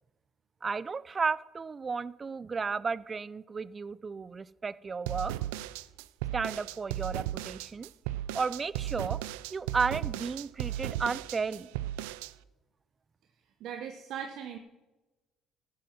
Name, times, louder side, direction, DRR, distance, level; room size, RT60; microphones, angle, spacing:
voice 1, 0.6-5.3 6.3-7.9 8.3-9.2 9.5-11.7, right 5 dB, 35° right, 20 dB, 0.5 m, -33 dB
sound 1, 5.1-12.3, right 13 dB, 85° right, 0.4 m, -36 dB
voice 2, 13.6-14.6, right 8 dB, 70° right, 6 dB, 1.0 m, -39 dB
12.5 x 9.4 x 5.9 m, 1.1 s
supercardioid pair, 70°, 0 cm